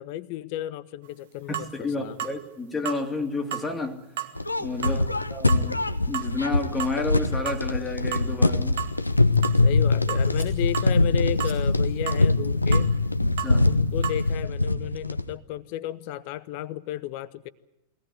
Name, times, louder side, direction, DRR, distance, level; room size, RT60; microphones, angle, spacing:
voice 1, 0.0-2.2 4.8-5.2 9.6-12.9 13.6-17.5, left 13 dB, 45° left, 1.0 m, -33 dB
sound 1, 1.0-1.1 1.5-1.7 2.2-2.4 2.8-3.0 3.5-3.7 4.2-4.3 4.8-5.0 5.5-5.6 6.1-6.3 6.8-7.0 7.5-7.6 8.1-8.3 8.8-9.0 9.4-9.6 10.1-10.2 10.7-10.9 11.4-11.6 12.1-12.2 12.7-12.9 13.4-13.6 14.0-14.2, right 12 dB, 55° right, 1.6 m, -32 dB
voice 2, 1.5-4.1 4.6-8.8 13.2-13.8, left 3 dB, 10° left, 2.4 m, -31 dB
sound 2, 4.4-15.3, left 2 dB, 85° left, 0.9 m, -23 dB
sound 3, 10.1-14.1, right 1 dB, 85° right, 4.7 m, -45 dB
23.0 x 17.5 x 9.5 m
figure-of-eight pair, 90°, 0 cm